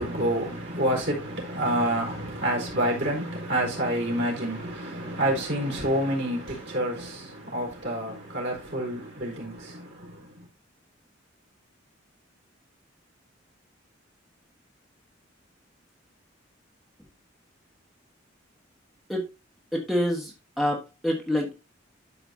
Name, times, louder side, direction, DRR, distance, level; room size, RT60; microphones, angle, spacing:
voice 1, 0.0-10.5, right 1 dB, 65° right, 4.2 m, -28 dB
voice 2, 19.7-21.6, equal, ahead, 1.5 m, -27 dB
12.5 x 5.0 x 2.7 m
head